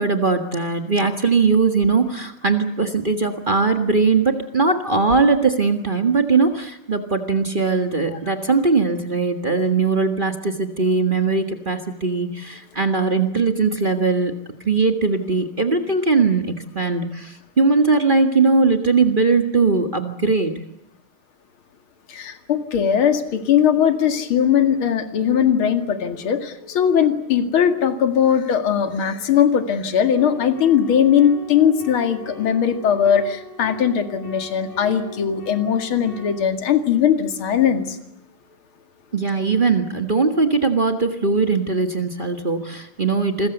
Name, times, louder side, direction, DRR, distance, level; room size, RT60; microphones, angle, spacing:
voice 1, 0.0-14.3 14.6-20.6 39.1-43.5, right 4 dB, 40° right, 6 dB, 0.7 m, -20 dB
voice 2, 22.1-38.0, left 8 dB, 45° left, 8 dB, 2.5 m, -19 dB
sound 1, 30.2-36.4, left 2 dB, 80° left, 6.5 m, -40 dB
28.5 x 22.0 x 8.0 m, 0.85 s
omnidirectional pair, 3.9 m